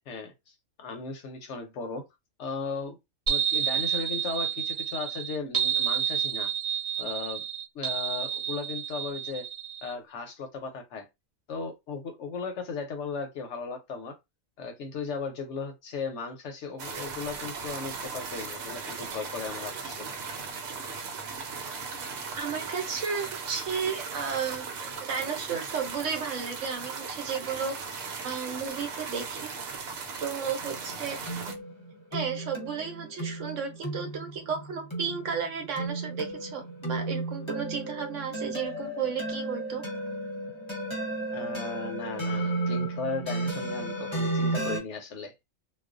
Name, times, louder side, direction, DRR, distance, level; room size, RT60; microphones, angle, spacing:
voice 1, 0.1-2.0 2.4-3.0 3.3-6.5 7.0-7.5 7.7-9.4 9.8-11.1 11.5-14.2 14.6-20.1 41.3-45.3, left 4 dB, 70° left, 0.8 m, -36 dB
sound 1, 3.3-9.9, right 9 dB, 50° right, 0.4 m, -29 dB
sound 2, 16.8-31.5, right 5 dB, 90° right, 1.1 m, -38 dB
voice 2, 22.4-27.8 28.2-29.5 30.2-31.2 32.1-39.8, right 6 dB, 65° right, 1.0 m, -33 dB
sound 3, 30.6-44.8, right 2 dB, 25° left, 0.8 m, -34 dB
2.4 x 2.2 x 2.4 m
omnidirectional pair, 1.4 m